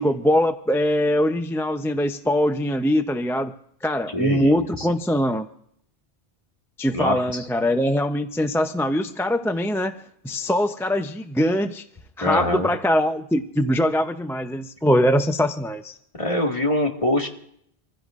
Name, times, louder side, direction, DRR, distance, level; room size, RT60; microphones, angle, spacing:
voice 1, 0.0-3.5 3.8-5.5 6.8-10.0 10.2-11.8 12.2-16.0, equal, 5° left, 8 dB, 0.4 m, -22 dB
voice 2, 4.1-4.9 6.9-7.5 12.2-12.7 16.2-17.3, left 1 dB, 30° left, 2 dB, 1.8 m, -24 dB
26.0 x 15.5 x 2.5 m, 0.69 s
omnidirectional pair, 1.1 m